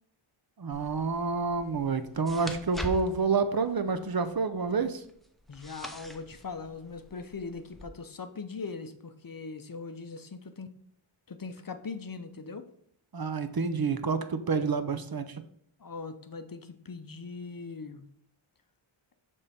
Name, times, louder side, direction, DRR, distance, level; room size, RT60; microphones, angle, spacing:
voice 1, 0.6-5.0 13.1-15.4, right 4 dB, 45° right, 10 dB, 0.6 m, -28 dB
sound 1, 0.7-7.8, equal, ahead, 0.7 m, -44 dB
voice 2, 5.5-10.7 11.3-12.7 15.8-18.0, left 4 dB, 45° left, 9 dB, 0.6 m, -40 dB
6.6 x 3.6 x 4.2 m, 0.67 s
wide cardioid pair, 55°, 50 cm